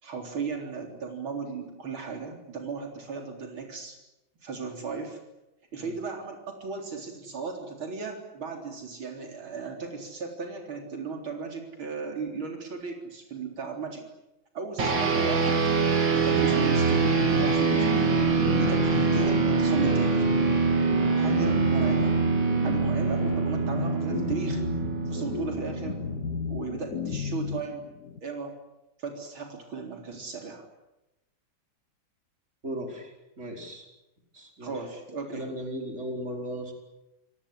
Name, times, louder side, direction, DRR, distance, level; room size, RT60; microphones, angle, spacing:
voice 1, 0.0-4.0 4.4-5.2 5.7-14.0 14.5-15.6 16.1-18.1 18.6-20.2 21.2-22.2 22.6-24.6 25.1-26.0 26.5-27.9 28.2-28.5 29.0-30.7 34.6-35.5, right 5 dB, 90° right, 3 dB, 4.6 m, -36 dB
sound 1, 14.8-26.5, right 5 dB, 70° right, 3.8 m, -24 dB
sound 2, 16.3-28.2, left 7 dB, 55° left, 1.7 m, -34 dB
voice 2, 32.6-33.9 34.3-34.7 35.3-36.7, right 1 dB, 35° right, 2 dB, 5.4 m, -37 dB
28.0 x 18.5 x 9.9 m, 0.94 s
omnidirectional pair, 2.2 m